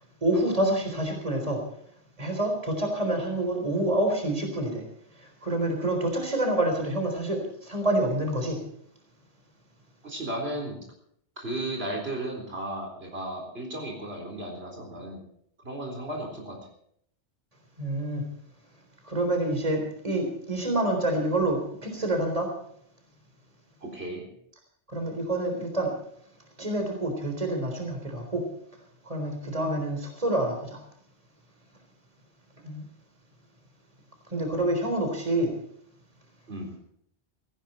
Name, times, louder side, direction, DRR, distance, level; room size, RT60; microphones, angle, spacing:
voice 1, 0.2-1.6 2.2-4.8 5.4-8.6 17.8-18.3 19.1-22.5 24.9-25.9 26.6-28.5 29.1-30.8 32.6-32.8 34.3-35.5, right 1 dB, 35° right, 3 dB, 4.0 m, -27 dB
voice 2, 10.0-10.8 11.4-15.2 15.6-16.6 23.8-24.3 36.5-36.7, right 1 dB, 70° right, 1 dB, 4.3 m, -34 dB
18.0 x 16.5 x 4.4 m, 0.67 s
omnidirectional pair, 1.1 m